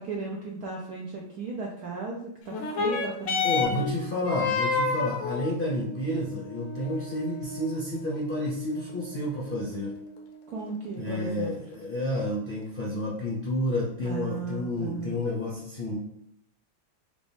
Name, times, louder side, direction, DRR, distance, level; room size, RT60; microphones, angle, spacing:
voice 1, 0.0-3.8 10.5-11.5 14.0-15.2, right 4 dB, 70° right, -1 dB, 0.9 m, -35 dB
sound 1, 2.5-11.4 12.3-12.4, left 4 dB, 70° left, 1.4 m, -32 dB
voice 2, 3.4-10.0 10.9-16.0, left 1 dB, 45° left, -7 dB, 0.7 m, -30 dB
5.0 x 2.5 x 3.4 m, 0.72 s
omnidirectional pair, 2.2 m